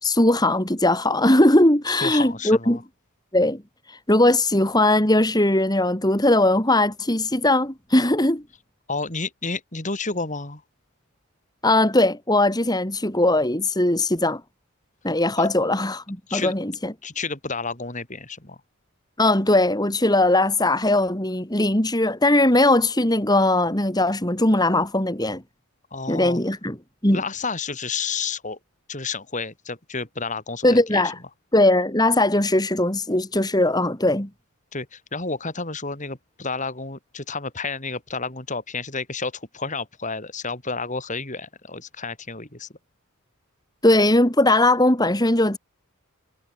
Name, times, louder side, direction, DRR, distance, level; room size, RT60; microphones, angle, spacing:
voice 1, 0.0-2.8 3.3-3.6 3.9-8.4 11.6-14.4 15.0-16.9 19.2-25.4 26.1-26.8 27.0-27.2 30.6-31.2 31.5-34.3 43.8-45.6, left 1 dB, 20° left, 3.1 m, -19 dB
voice 2, 1.9-2.8 8.9-10.6 15.4-15.5 16.3-16.5 17.0-18.6 25.9-26.4 27.1-28.6 28.9-31.0 34.7-42.7, left 4 dB, 35° left, 4.0 m, -31 dB
head